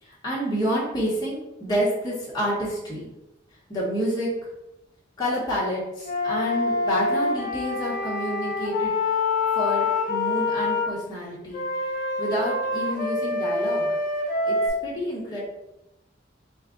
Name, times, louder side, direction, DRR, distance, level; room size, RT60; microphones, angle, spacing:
voice 1, 0.0-3.0 3.7-4.3 5.2-8.9 9.5-11.6 12.2-13.9 14.4-14.6 14.8-15.4, equal, 20° left, -8 dB, 1.3 m, -28 dB
Wind instrument woodwind instrument, 6.0-10.9 11.5-14.7, left 3 dB, 50° left, 0.8 m, -26 dB
4.2 x 2.3 x 3.8 m, 0.93 s
head